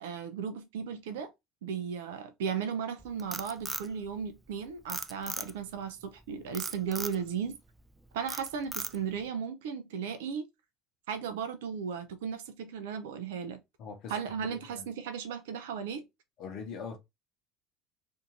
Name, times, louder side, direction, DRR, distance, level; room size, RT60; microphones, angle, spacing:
voice 1, 0.0-1.3 1.6-7.6 8.1-10.5 11.1-13.6 14.1-16.0, right 7 dB, 75° right, 0.5 m, -36 dB
Frog, 3.0-4.5 4.9-5.8 6.5-7.2 7.7-7.9 8.3-9.2, right 2 dB, 10° right, 0.4 m, -37 dB
voice 2, 13.8-14.9 16.4-17.0, left 5 dB, 55° left, 0.7 m, -42 dB
2.6 x 2.5 x 2.7 m
hypercardioid pair, 70°, 0 cm